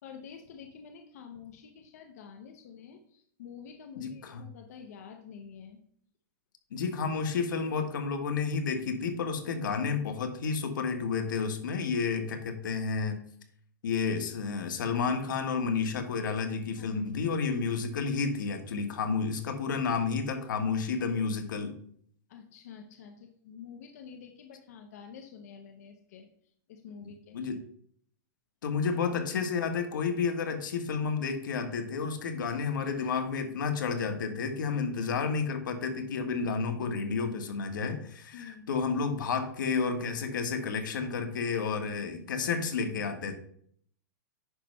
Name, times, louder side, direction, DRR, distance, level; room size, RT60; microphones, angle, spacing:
voice 1, 0.0-5.8 16.8-17.2 22.3-26.3 26.7-27.4 28.8-28.9 29.4-29.5 38.3-38.8, left 7 dB, 55° left, 4 dB, 1.0 m, -48 dB
voice 2, 4.0-4.4 6.7-13.2 13.8-21.8 27.3-27.6 28.6-43.4, left 5 dB, 85° left, 5 dB, 1.6 m, -31 dB
9.9 x 3.3 x 5.5 m, 0.62 s
supercardioid pair, 175°, 10 cm